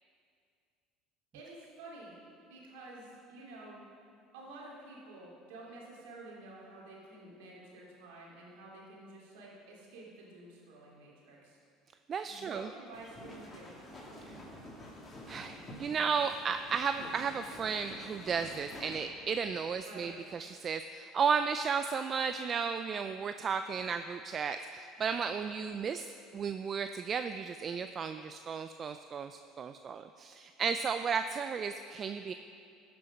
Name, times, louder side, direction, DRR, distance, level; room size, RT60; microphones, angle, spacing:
voice 1, 1.3-2.2 2.5-3.8 4.3-11.6 12.2-13.9 19.8-20.2, right 2 dB, 85° right, -4 dB, 2.8 m, -50 dB
voice 2, 12.1-12.7 15.3-32.3, right 6 dB, 40° right, 9 dB, 0.4 m, -34 dB
sound 1, 12.9-19.0, equal, 25° left, 2.9 m, -49 dB
13.5 x 6.9 x 5.3 m, 2.4 s
supercardioid pair, 85°, 0 cm